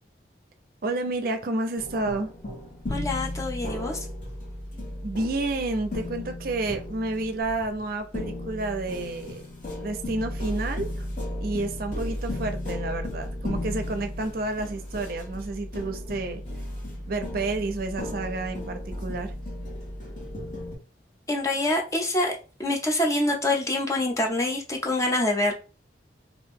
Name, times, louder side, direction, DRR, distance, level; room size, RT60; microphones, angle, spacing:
voice 1, 0.8-2.3 5.0-9.4 9.8-11.1 11.4-16.4 17.1-19.3, right 2 dB, 55° right, 0.5 m, -30 dB
sound 1, 1.8-20.7, left 1 dB, 45° left, 1.3 m, -35 dB
voice 2, 2.9-4.0 21.3-25.5, left 1 dB, 15° left, 0.5 m, -26 dB
2.8 x 2.5 x 3.5 m
head